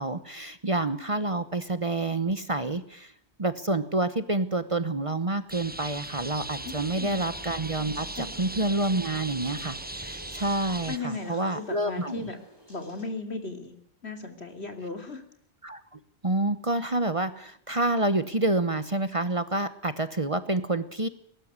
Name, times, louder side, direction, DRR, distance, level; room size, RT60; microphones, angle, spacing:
voice 1, 0.0-3.1 3.4-12.3 15.6-21.1, right 2 dB, 30° right, 13 dB, 1.1 m, -28 dB
sound 1, 5.5-11.0, right 2 dB, 10° right, 0.6 m, -38 dB
sound 2, 6.4-13.0, equal, 20° left, 7.1 m, -50 dB
voice 2, 6.6-7.2 8.2-8.3 10.9-12.4 12.7-13.7 14.0-15.2, left 3 dB, 70° left, 7 dB, 3.3 m, -36 dB
22.5 x 12.5 x 9.6 m, 0.68 s
omnidirectional pair, 1.1 m